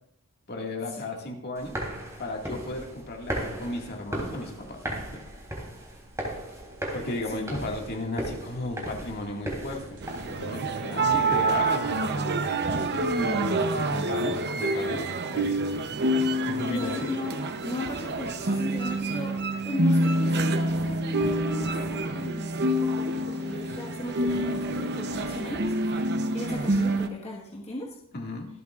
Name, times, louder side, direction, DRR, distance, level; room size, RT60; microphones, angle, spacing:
voice 1, 0.5-1.8 2.2-4.8 6.9-10.0 10.3-15.1 15.3-15.6 16.4-17.2 28.1-28.5, left 2 dB, 45° left, 1 dB, 2.1 m, -34 dB
sound 1, 1.6-10.3, right 1 dB, 15° right, 3.3 m, -36 dB
sound 2, 9.8-15.8, left 2 dB, 85° right, 3.6 m, -47 dB
sound 3, 10.0-27.1, right 1 dB, 50° right, 0.8 m, -27 dB
voice 2, 16.7-17.4 17.6-19.3 19.6-27.9, left 1 dB, 30° left, -4 dB, 1.5 m, -37 dB
25.0 x 8.4 x 2.5 m, 0.72 s
head